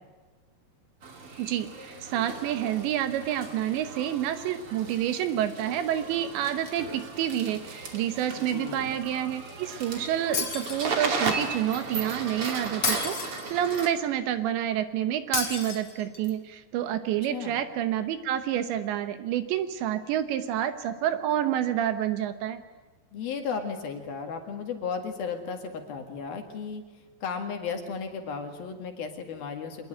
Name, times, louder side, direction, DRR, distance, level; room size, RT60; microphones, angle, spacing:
sound 1, 1.0-13.9, right 4 dB, 35° right, 2.7 m, -36 dB
voice 1, 1.4-22.6, right 11 dB, 75° right, 10 dB, 3.1 m, -28 dB
voice 2, 8.5-9.0 17.3-17.5 23.1-26.8 27.2-29.8, left 6 dB, 60° left, 4 dB, 3.3 m, -34 dB
Shatter, 10.3-11.3 12.8-13.8 15.3-16.3, left 5 dB, 35° left, 3.2 m, -31 dB
24.5 x 20.5 x 9.0 m, 1.3 s
omnidirectional pair, 5.6 m